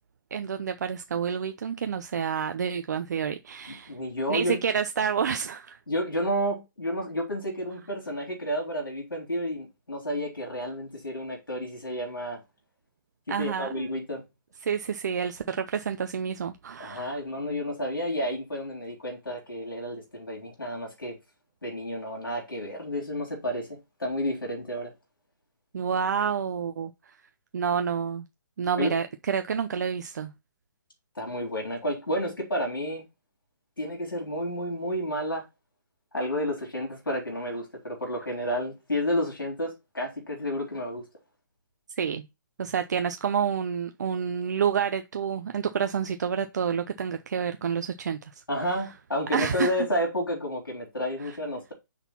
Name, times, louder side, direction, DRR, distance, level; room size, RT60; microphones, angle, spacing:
voice 1, 0.3-4.0 4.3-5.8 13.3-13.9 14.6-17.2 25.7-27.2 27.5-28.3 28.6-30.3 42.0-42.2 42.6-48.2 49.3-49.9 51.2-51.3, right 7 dB, 55° right, 0.6 m, -29 dB
voice 2, 3.7-4.6 5.9-12.4 13.3-14.2 16.8-21.2 21.6-23.7 24.0-24.9 28.7-28.9 31.2-33.0 33.8-35.4 36.1-41.0 48.5-51.7, equal, 80° left, 3.7 m, -31 dB
6.0 x 4.0 x 5.6 m
figure-of-eight pair, 135°, 11 cm